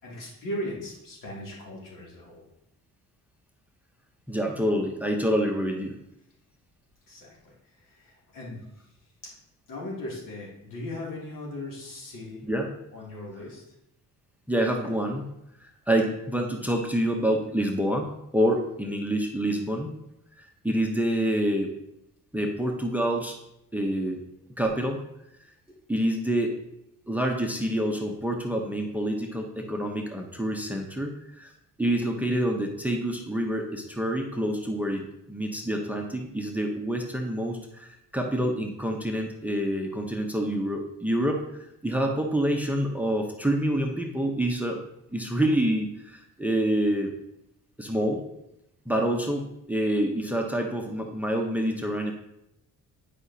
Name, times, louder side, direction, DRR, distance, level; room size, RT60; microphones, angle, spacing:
voice 1, 0.0-2.5 7.1-8.8 9.2-9.3 9.7-12.4 12.9-13.6, left 1 dB, 70° left, -4 dB, 2.7 m, -38 dB
voice 2, 4.3-6.0 12.4-12.7 14.5-15.3 15.6-20.0 20.4-21.7 22.3-23.4 23.7-24.2 24.6-25.0 25.9-26.6 27.1-31.5 31.8-41.4 41.8-44.8 45.1-47.1 47.8-48.2 48.9-52.1, right 1 dB, 5° right, 2 dB, 0.8 m, -27 dB
9.9 x 5.0 x 2.8 m, 0.83 s
cardioid pair, 90°, 33 cm